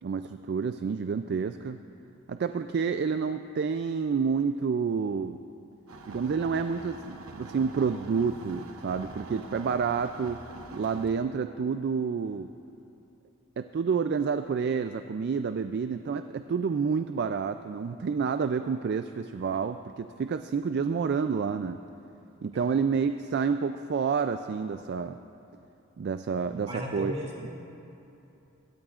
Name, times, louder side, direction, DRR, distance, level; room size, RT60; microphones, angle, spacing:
voice 1, 0.0-1.8 2.3-5.4 6.1-10.4 10.7-12.5 13.6-21.8 22.4-25.2 26.0-27.1, right 5 dB, 50° right, 9 dB, 0.3 m, -29 dB
sound 1, 5.9-11.1, right 2 dB, 85° right, 1.0 m, -44 dB
voice 2, 26.5-27.5, equal, 30° right, -3 dB, 2.5 m, -36 dB
21.5 x 17.5 x 2.4 m, 2.9 s
head